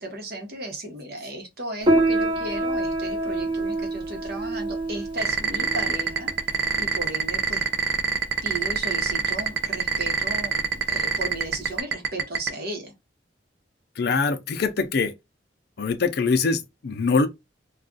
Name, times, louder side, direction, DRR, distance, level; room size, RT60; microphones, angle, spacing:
voice 1, 0.0-6.3 6.8-7.7 8.4-12.9, right 1 dB, 60° right, 1.0 m, -35 dB
Piano, 1.8-11.8, right 2 dB, 30° right, 0.9 m, -28 dB
sound 1, 5.2-12.5, right 6 dB, 75° right, 0.5 m, -23 dB
voice 2, 14.0-15.1 15.8-17.3, left 4 dB, 60° left, 0.5 m, -23 dB
2.4 x 2.3 x 3.8 m
head